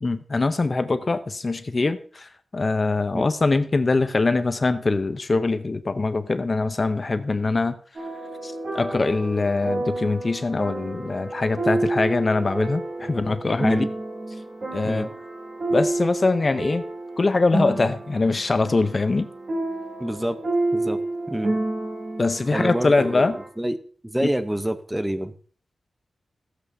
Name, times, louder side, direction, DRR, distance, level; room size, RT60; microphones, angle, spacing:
voice 1, 0.0-7.8 8.4-13.9 14.7-15.1 15.7-16.8 17.2-19.3 22.2-23.4 24.2-24.3, left 3 dB, 35° left, 11 dB, 0.6 m, -23 dB
sound 1, 8.0-23.5, right 2 dB, 50° right, 2.6 m, -30 dB
voice 2, 20.0-20.4 20.7-21.0 21.3-21.5 22.5-23.8 24.0-25.3, right 1 dB, 5° right, 10 dB, 0.7 m, -27 dB
15.5 x 8.1 x 2.6 m, 0.44 s
wide cardioid pair, 115°, 0 cm